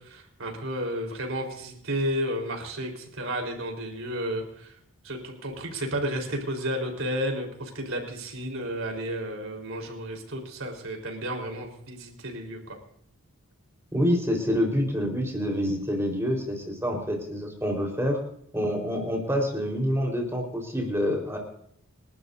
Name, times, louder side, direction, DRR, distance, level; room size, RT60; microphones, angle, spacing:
voice 1, 0.0-4.7 5.0-12.8, equal, 65° right, 2 dB, 4.0 m, -32 dB
voice 2, 13.9-18.2 18.5-21.4, equal, 10° right, 1 dB, 4.1 m, -27 dB
30.0 x 12.5 x 2.7 m, 0.69 s
head